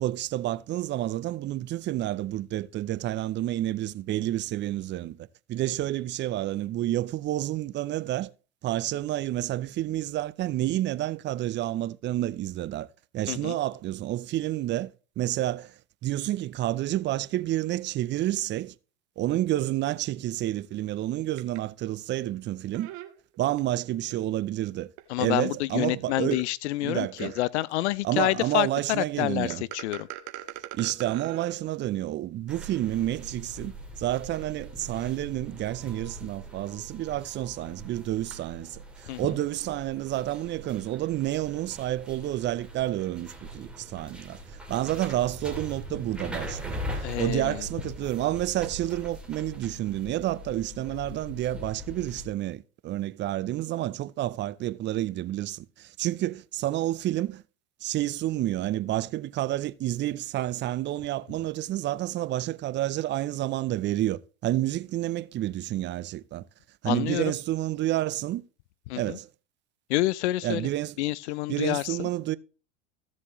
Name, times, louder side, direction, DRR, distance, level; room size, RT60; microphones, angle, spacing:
voice 1, 0.0-8.3 8.6-12.9 13.1-15.7 16.0-18.7 19.2-22.9 23.4-24.9 25.2-26.4 26.8-27.4 28.0-29.6 30.7-57.4 57.8-66.5 66.8-68.4 69.0-69.3 70.4-71.0 71.5-72.4, right 14 dB, 30° right, 0.6 m, -29 dB
sound 1, 21.4-21.6 22.7-23.6 24.1-24.2 25.0-25.1 25.7-25.8 26.3-26.4 27.2-27.7 29.5-31.6, right 14 dB, 55° right, 1.6 m, -40 dB
voice 2, 25.1-30.1 39.1-39.2 47.0-47.6 66.9-67.3 68.9-69.2 69.9-70.7 71.0-72.1, left 17 dB, 70° left, 0.6 m, -28 dB
sound 2, 32.5-52.3, equal, 5° right, 2.8 m, -41 dB
15.5 x 7.4 x 3.1 m
hypercardioid pair, 95°, 35 cm